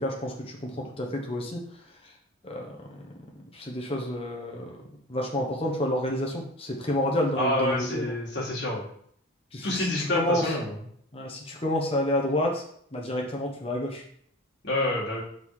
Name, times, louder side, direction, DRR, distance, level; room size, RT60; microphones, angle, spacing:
voice 1, 0.0-1.6 2.0-2.1 2.4-2.8 3.5-4.8 5.1-8.1 9.5-10.5 11.1-12.6 12.9-14.0, left 1 dB, 30° left, 0 dB, 1.1 m, -29 dB
voice 2, 7.3-8.8 9.6-10.8 14.6-15.2, left 1 dB, 55° left, -5 dB, 2.0 m, -27 dB
5.5 x 4.0 x 4.8 m, 0.65 s
head